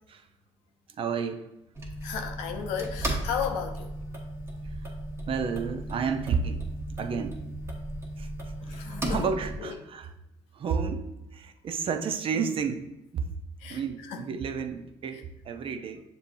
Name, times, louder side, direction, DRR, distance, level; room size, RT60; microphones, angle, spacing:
voice 1, 0.9-1.5 2.1-2.2 4.6-4.9 5.3-6.7 7.0-7.4 8.2-8.3 8.7-10.1 10.5-12.8 13.1-13.3 13.7-16.0, right 6 dB, 50° right, 7 dB, 0.5 m, -31 dB
sound 1, 1.8-9.6, right 1 dB, 20° right, 1.2 m, -35 dB
voice 2, 2.0-3.9 8.6-9.8 13.6-14.3 15.1-15.2, left 7 dB, 85° left, 5 dB, 0.6 m, -35 dB
6.8 x 2.7 x 2.6 m, 0.90 s
supercardioid pair, 70°, 12 cm